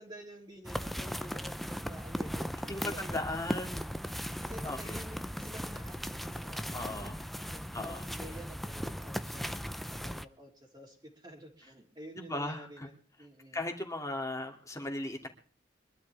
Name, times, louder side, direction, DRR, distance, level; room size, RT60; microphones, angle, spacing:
voice 1, 0.0-3.2 4.4-7.1 7.3-13.7, right 1 dB, 25° right, -6 dB, 3.2 m, -50 dB
sound 1, 0.6-10.2, equal, ahead, 0.6 m, -38 dB
voice 2, 2.7-3.8 4.6-5.0 6.7-7.2 7.7-8.0 12.2-12.9 13.5-15.3, left 2 dB, 15° left, 3 dB, 2.6 m, -37 dB
25.0 x 12.0 x 3.5 m, 0.40 s
head